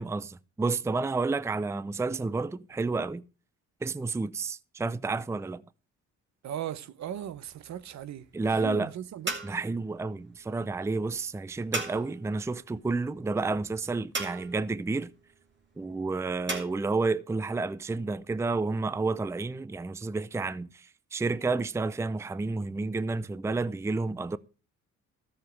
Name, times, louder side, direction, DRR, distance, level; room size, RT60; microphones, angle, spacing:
voice 1, 0.0-3.2 3.8-5.6 8.3-8.9 9.4-15.1 15.8-24.4, right 3 dB, 10° right, 0.5 m, -30 dB
voice 2, 6.4-9.4, right 10 dB, 65° right, 0.9 m, -38 dB
sound 1, 7.0-16.6, right 3 dB, 40° right, 3.5 m, -40 dB
13.5 x 7.4 x 6.1 m
cardioid pair, 90°, 30 cm